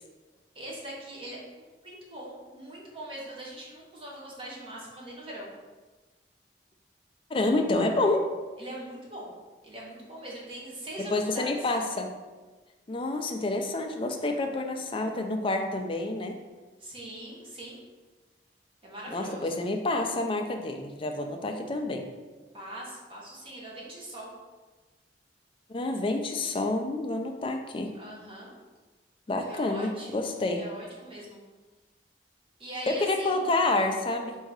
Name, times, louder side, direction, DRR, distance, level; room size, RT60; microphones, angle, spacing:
voice 1, 0.5-5.5 8.6-9.3 9.6-11.5 16.8-17.8 18.8-19.7 22.5-24.3 27.9-28.5 29.4-31.4 32.6-33.5, right 1 dB, 30° right, -4 dB, 1.0 m, -42 dB
voice 2, 7.3-8.3 11.1-12.1 12.9-16.4 19.1-22.1 25.7-27.9 29.3-30.6 32.9-34.4, left 2 dB, 30° left, 4 dB, 0.4 m, -28 dB
3.7 x 2.7 x 4.7 m, 1.3 s
head